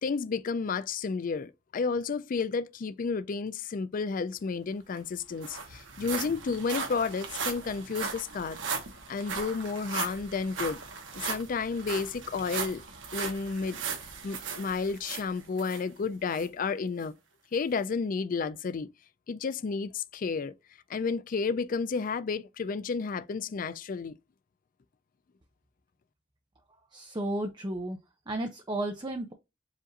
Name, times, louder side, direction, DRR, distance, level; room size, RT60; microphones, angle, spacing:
voice 1, 0.0-8.6 9.1-10.8 11.1-12.8 13.1-13.8 14.2-17.1 17.5-18.9 19.3-20.5 20.9-24.1, left 5 dB, 45° left, 0.4 m, -31 dB
sound 1, 4.6-4.7 5.0-15.8 16.3-16.5 17.0-17.1, right 5 dB, 80° right, 1.3 m, -37 dB
voice 2, 26.9-28.0 28.3-29.3, right 1 dB, 25° right, 0.6 m, -33 dB
5.0 x 2.6 x 3.9 m
head